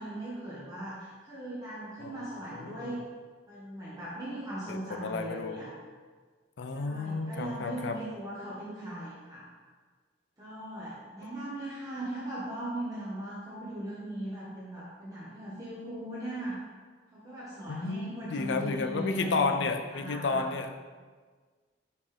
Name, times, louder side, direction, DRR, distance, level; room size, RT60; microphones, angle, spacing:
voice 1, 0.0-3.0 3.5-5.7 6.7-9.4 10.4-16.6 17.1-20.5, right 1 dB, 20° right, -9 dB, 1.2 m, -39 dB
voice 2, 2.5-2.9 4.7-5.6 6.6-8.0 17.7-20.8, left 4 dB, 80° left, 7 dB, 0.5 m, -32 dB
5.6 x 5.2 x 3.3 m, 1.5 s
head